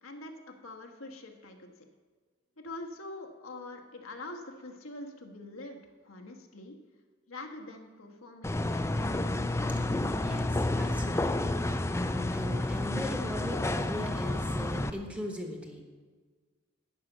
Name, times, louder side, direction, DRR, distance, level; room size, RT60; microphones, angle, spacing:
voice 1, 0.0-1.8 2.6-6.7 7.3-9.3, left 2 dB, 90° left, 3 dB, 1.3 m, -45 dB
sound 1, 8.4-14.9, left 2 dB, 15° left, 0.4 m, -30 dB
voice 2, 10.2-15.8, left 1 dB, 5° right, 2 dB, 1.2 m, -40 dB
11.0 x 5.8 x 8.0 m, 1.5 s
head